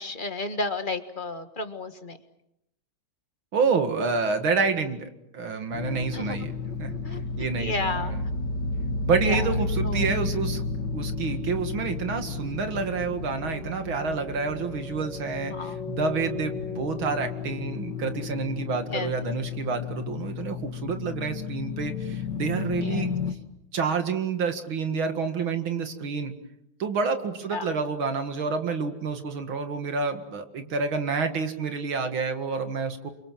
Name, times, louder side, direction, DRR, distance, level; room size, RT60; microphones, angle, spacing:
voice 1, 0.0-2.2 6.1-6.4 7.0-7.2 7.6-8.2 9.2-9.5 9.8-10.0 15.5-15.8 18.9-19.1 22.8-23.0 27.5-27.7, left 3 dB, 25° left, 8 dB, 1.6 m, -32 dB
voice 2, 3.5-6.5 6.8-8.2 9.0-10.6 10.9-23.2 23.7-26.3 26.8-33.1, right 5 dB, 70° right, 7 dB, 2.7 m, -28 dB
sound 1, 5.7-23.3, left 4 dB, 55° left, 2.4 m, -32 dB
28.5 x 24.5 x 7.6 m, 0.84 s
omnidirectional pair, 2.3 m